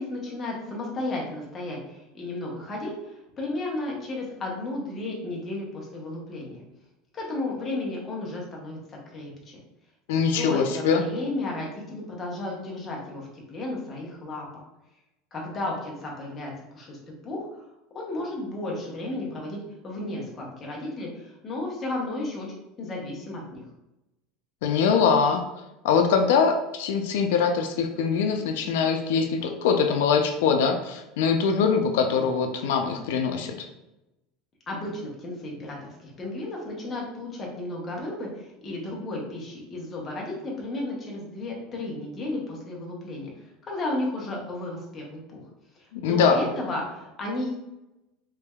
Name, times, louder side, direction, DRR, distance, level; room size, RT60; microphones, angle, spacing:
voice 1, 0.0-6.6 7.1-9.6 10.1-14.6 15.3-17.0 17.2-17.6 17.9-22.5 22.8-23.6 34.7-43.3 43.7-45.4 46.0-47.5, left 2 dB, 20° left, -2 dB, 0.7 m, -33 dB
voice 2, 10.1-11.0 24.6-25.4 25.8-33.7 45.9-46.5, left 6 dB, 90° left, 5 dB, 0.4 m, -23 dB
3.3 x 3.1 x 2.2 m, 0.94 s
cardioid pair, 175°, 0 cm